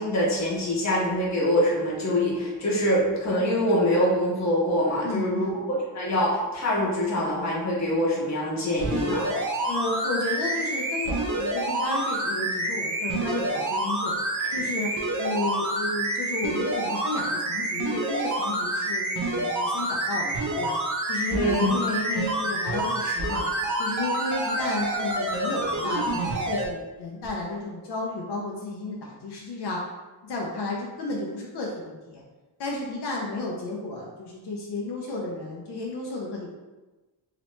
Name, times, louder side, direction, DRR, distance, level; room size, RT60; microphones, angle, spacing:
voice 1, 0.0-9.3 21.3-21.7, equal, 45° left, -5 dB, 1.0 m, -24 dB
voice 2, 5.0-5.6 9.7-14.2 14.5-14.9 15.2-20.8 21.1-23.4 23.8-29.9 30.2-32.2 32.6-36.5, left 2 dB, 80° left, -2 dB, 0.6 m, -32 dB
sound 1, 8.8-26.6 27.2-27.3, right 1 dB, 50° right, 0.6 m, -28 dB
3.0 x 2.9 x 3.1 m, 1.2 s
wide cardioid pair, 180°, 40 cm